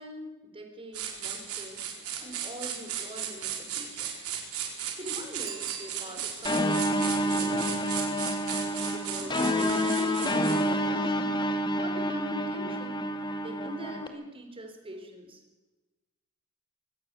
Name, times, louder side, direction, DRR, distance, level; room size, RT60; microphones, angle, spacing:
voice 1, 0.0-1.8 2.2-4.1 5.0-7.9 8.7-11.5 11.8-13.1 13.4-15.4, equal, 25° right, 4 dB, 4.3 m, -43 dB
sound 1, 0.9-10.7, right 8 dB, 85° right, 4.7 m, -36 dB
Bicycle bell, 5.4-6.6 12.0-12.1, right 11 dB, 70° right, 2.5 m, -44 dB
sound 2, 6.4-14.1, equal, 20° left, 2.2 m, -28 dB
24.5 x 17.5 x 7.1 m, 1.1 s
head